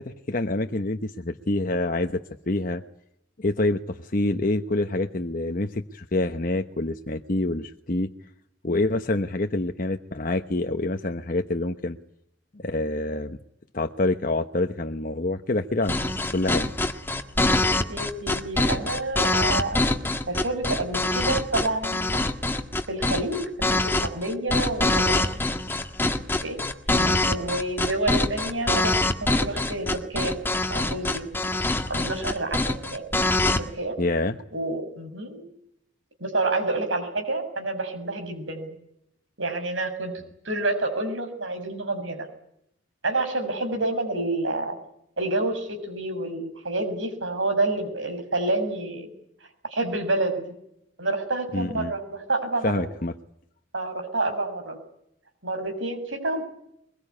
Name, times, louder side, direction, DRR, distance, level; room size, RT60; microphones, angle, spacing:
voice 1, 0.0-2.8 3.4-8.1 8.6-12.0 12.5-13.4 13.7-16.0 16.3-16.7 26.9-27.2 34.0-34.4 51.5-51.9 52.6-53.1, left 2 dB, 45° left, 6 dB, 1.0 m, -26 dB
sound 1, 15.8-33.6, left 2 dB, 10° left, 1.7 m, -24 dB
voice 2, 17.6-19.9 20.3-22.2 22.9-23.4 23.7-25.3 26.4-26.6 27.3-30.4 30.7-31.2 31.9-33.0 33.6-34.0 34.5-35.4 36.2-38.8 39.4-40.1 40.5-42.3 43.0-44.8 45.2-49.1 49.7-50.5 51.0-52.9 53.7-54.8 55.4-56.4, right 2 dB, 80° right, 6 dB, 7.0 m, -28 dB
23.0 x 22.0 x 9.7 m, 0.76 s
head